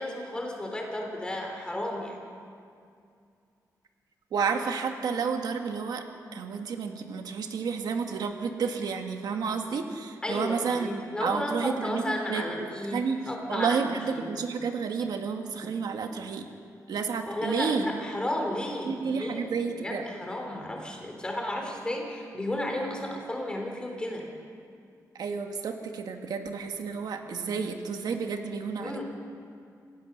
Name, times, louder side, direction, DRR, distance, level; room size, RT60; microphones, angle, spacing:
voice 1, 0.0-2.2 10.2-14.3 17.3-24.2 28.8-29.0, left 1 dB, 15° left, 1 dB, 3.3 m, -33 dB
voice 2, 4.3-6.1 6.3-10.9 11.2-13.2 13.5-16.5 16.9-17.9 18.8-20.0 25.2-29.0, right 5 dB, 80° right, 4 dB, 1.7 m, -31 dB
27.5 x 16.0 x 6.6 m, 2.4 s
wide cardioid pair, 175°, 7 cm